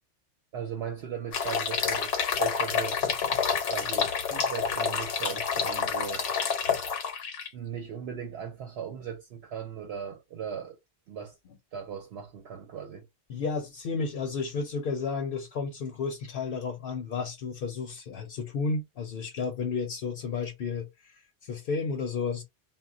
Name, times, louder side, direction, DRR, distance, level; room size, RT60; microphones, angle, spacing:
voice 1, 0.5-3.0 3.6-6.3 7.5-10.8 11.1-11.4 11.7-13.1, right 8 dB, 65° right, 0.8 m, -38 dB
sound 1, 1.3-7.5, left 6 dB, 80° left, 0.9 m, -28 dB
voice 2, 13.3-22.4, left 4 dB, 60° left, 0.7 m, -32 dB
2.1 x 2.1 x 3.6 m
omnidirectional pair, 1.2 m